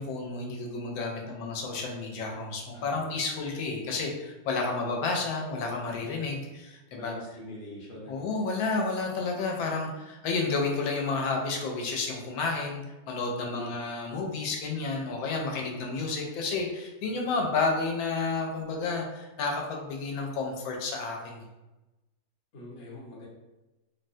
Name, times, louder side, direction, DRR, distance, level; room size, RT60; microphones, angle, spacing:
voice 1, 0.0-7.1 8.1-21.4, left 3 dB, 85° left, 0 dB, 1.3 m, -31 dB
voice 2, 2.7-3.0 5.9-6.2 7.0-8.3 13.4-13.7 15.5-15.8 22.5-23.3, left 1 dB, 45° left, -6 dB, 1.0 m, -44 dB
3.7 x 2.1 x 2.6 m, 1.0 s
omnidirectional pair, 2.1 m